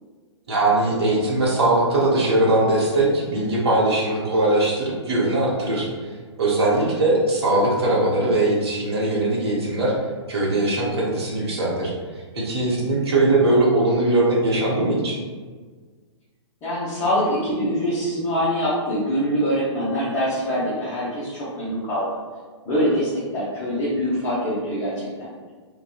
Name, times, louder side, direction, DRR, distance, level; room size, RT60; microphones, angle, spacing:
voice 1, 0.5-5.9 6.4-9.9 10.3-11.9 12.3-15.2, right 2 dB, 60° right, -4 dB, 0.9 m, -20 dB
voice 2, 16.6-22.1 22.7-25.3, equal, 20° left, -9 dB, 0.6 m, -24 dB
2.6 x 2.2 x 2.3 m, 1.5 s
figure-of-eight pair, 120°, 15 cm